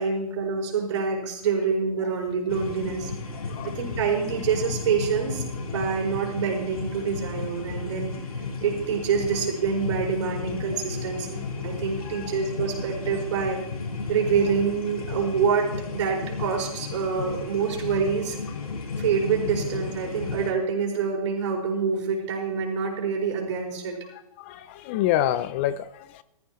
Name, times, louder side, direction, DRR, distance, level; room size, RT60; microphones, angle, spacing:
voice 1, 0.0-3.1 3.6-8.1 8.6-13.6 14.1-18.4 19.0-24.0, right 6 dB, 55° right, 5.1 m, -26 dB
sound 1, 2.5-20.5, left 4 dB, 85° left, 3.7 m, -34 dB
voice 2, 3.4-3.7 11.1-11.3 12.1-12.3 24.4-26.2, left 12 dB, 20° left, 0.3 m, -27 dB
17.0 x 14.0 x 3.0 m
hypercardioid pair, 155°, 18 cm